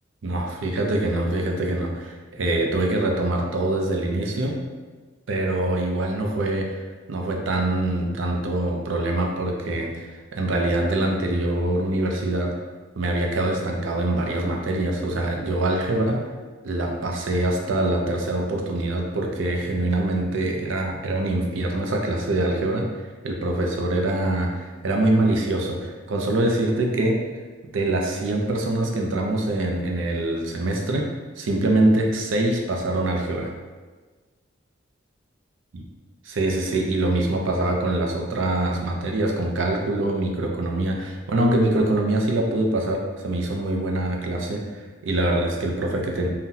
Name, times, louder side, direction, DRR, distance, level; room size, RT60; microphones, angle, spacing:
voice 1, 0.2-4.6 5.3-6.8 7.1-12.5 13.0-16.3 16.6-22.9 23.2-27.3 27.7-31.1 31.4-33.5 35.7-35.8 36.3-46.3, right 1 dB, 80° right, 1 dB, 0.5 m, -24 dB
3.8 x 2.2 x 2.7 m, 1.4 s
head